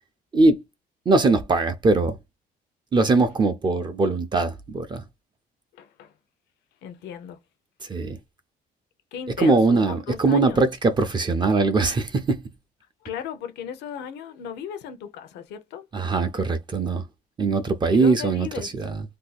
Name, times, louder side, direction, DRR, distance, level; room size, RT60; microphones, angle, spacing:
voice 1, 1.1-2.2 2.9-5.0 7.8-8.2 9.4-12.4 15.9-17.0 17.4-19.0, right 3 dB, 25° right, 0.5 m, -21 dB
voice 2, 5.7-6.1 6.8-7.4 9.1-9.8 10.1-10.6 13.0-15.9 17.9-18.9, left 8 dB, 85° left, 0.7 m, -36 dB
2.6 x 2.3 x 3.9 m
cardioid pair, 110°, 17 cm